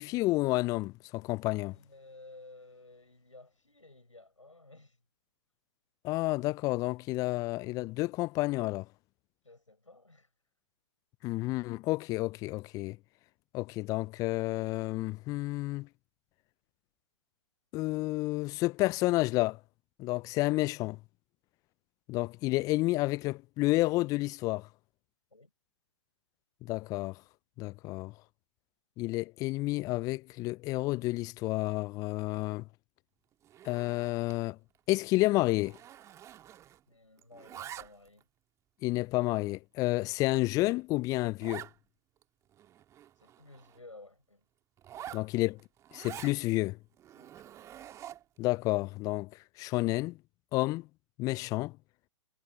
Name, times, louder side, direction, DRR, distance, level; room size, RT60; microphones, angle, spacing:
voice 1, 0.0-1.8 6.0-8.9 11.2-13.0 13.5-15.9 17.7-19.6 20.0-21.0 22.1-24.7 26.6-27.2 27.6-28.1 29.0-32.6 33.6-34.6 34.9-35.8 38.8-41.7 45.1-45.6 45.9-46.8 48.4-49.3 49.6-50.2 50.5-50.9 51.2-51.8, left 20 dB, 20° left, 0.6 m, -30 dB
voice 2, 1.6-5.0 9.4-10.3 25.3-25.5 36.9-38.3 43.2-44.4 45.0-45.2 47.1-47.4, left 2 dB, 85° left, 5.0 m, -54 dB
Zipper (clothing), 33.4-34.4 34.7-35.0 35.2-36.9 37.2-38.2 38.8-38.9 39.5-39.6 40.0-40.1 40.3-40.4 40.7-40.8 41.4-41.7 42.2-42.3 42.5-43.8 44.8-46.4 47.0-48.4, right 11 dB, 20° right, 2.1 m, -47 dB
figure-of-eight pair, 120°, 16 cm